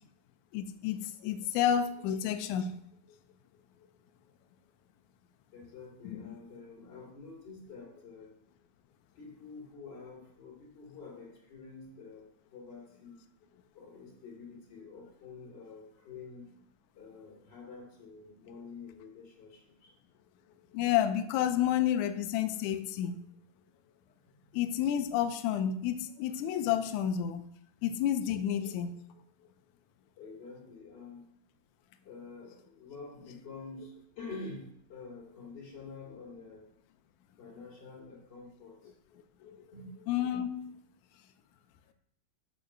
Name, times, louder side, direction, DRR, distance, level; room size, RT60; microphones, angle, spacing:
voice 1, 0.5-2.8 6.0-6.4 20.7-23.2 24.5-27.5 27.8-28.9 39.4-39.8 40.1-40.8, left 10 dB, 80° left, 9 dB, 1.7 m, -30 dB
voice 2, 5.5-8.3 9.1-13.3 13.7-16.5 16.9-19.9 24.4-24.6 30.2-31.2 32.0-36.7 37.4-38.9 39.7-39.9 41.5-41.6, left 4 dB, 35° left, -2 dB, 2.5 m, -48 dB
6.9 x 6.7 x 6.5 m, 0.72 s
omnidirectional pair, 4.3 m